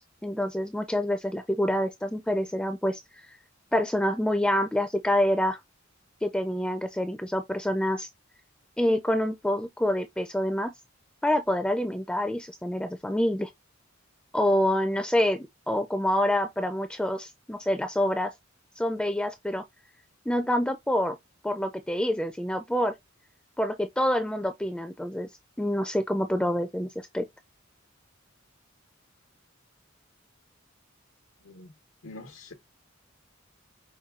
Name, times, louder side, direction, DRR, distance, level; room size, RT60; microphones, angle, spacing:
voice 1, 0.0-3.0 3.7-5.6 6.2-8.1 8.8-10.7 11.2-13.5 14.3-18.3 18.8-19.6 20.3-21.2 21.4-22.9 23.6-25.3 25.6-27.3, left 1 dB, 5° left, 0.5 m, -27 dB
voice 2, 31.4-31.7 32.0-32.5, left 2 dB, 85° left, 1.1 m, -45 dB
5.6 x 2.3 x 3.6 m
head